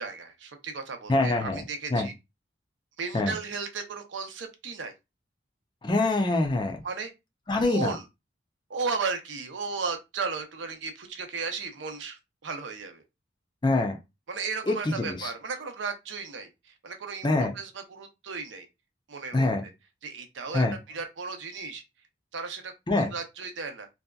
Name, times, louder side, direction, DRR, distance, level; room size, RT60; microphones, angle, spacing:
voice 1, 0.0-2.1 3.0-4.9 6.8-7.1 7.6-8.1 8.7-13.0 14.3-18.7 19.1-19.7 20.0-21.8 22.3-23.9, right 4 dB, 80° right, 0.6 m, -35 dB
voice 2, 1.1-1.6 1.9-2.1 3.1-3.3 5.8-6.8 7.5-7.9 13.6-14.0 14.7-15.3 17.2-17.5 19.3-19.6 20.5-20.7 22.9-23.1, left 2 dB, 25° left, 0.5 m, -25 dB
2.7 x 2.3 x 2.2 m
head